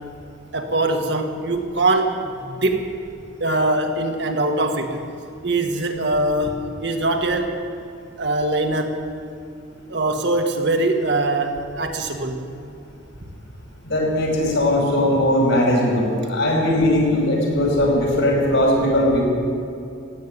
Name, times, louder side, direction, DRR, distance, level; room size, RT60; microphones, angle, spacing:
voice 1, 0.5-2.9 3.4-5.0 5.4-7.6 8.2-9.0 9.9-12.4 13.2-13.3, right 2 dB, 60° right, 4 dB, 1.5 m, -22 dB
voice 2, 13.8-19.2, left 1 dB, 70° left, -1 dB, 5.0 m, -19 dB
16.0 x 8.5 x 9.6 m, 2.6 s
head